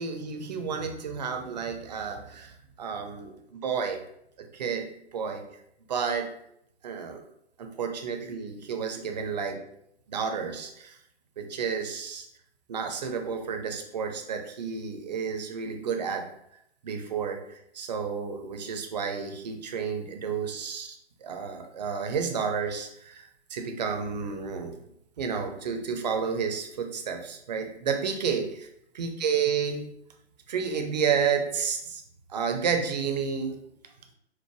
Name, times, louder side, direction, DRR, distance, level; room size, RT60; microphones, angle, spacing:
voice 1, 0.0-4.0 4.5-5.4 5.9-6.3 6.8-7.2 7.6-9.7 10.1-11.0 11.4-12.3 12.7-16.3 16.8-24.8 25.2-28.7 28.9-29.8 30.5-32.0 32.3-33.5, right 6 dB, 40° right, 4 dB, 0.5 m, -31 dB
4.4 x 2.1 x 3.0 m, 0.75 s
figure-of-eight pair, 135°, 34 cm